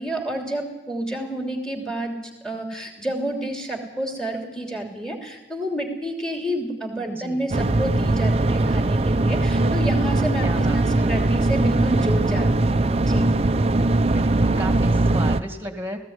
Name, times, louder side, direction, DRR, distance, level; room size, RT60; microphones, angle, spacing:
voice 1, 0.0-13.3, right 1 dB, 5° left, 3 dB, 3.1 m, -29 dB
voice 2, 7.1-7.5 10.4-11.1 13.9-16.0, right 1 dB, 10° right, 7 dB, 2.1 m, -34 dB
sound 1, 7.5-15.4, right 2 dB, 35° right, 0.6 m, -20 dB
18.5 x 16.0 x 9.6 m, 1.1 s
head